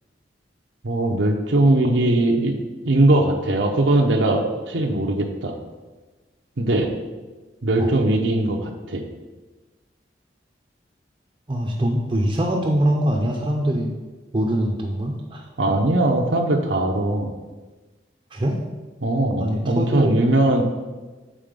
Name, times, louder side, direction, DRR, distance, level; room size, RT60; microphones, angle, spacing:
voice 1, 0.8-2.5 2.9-5.5 6.6-6.9 7.6-9.0 15.6-17.3 19.0-20.6, right 1 dB, 80° right, 3 dB, 0.8 m, -20 dB
voice 2, 11.5-13.9 14.3-15.4 18.3-18.6 19.4-20.1, right 1 dB, 25° right, -1 dB, 0.6 m, -23 dB
7.5 x 4.2 x 5.2 m, 1.3 s
head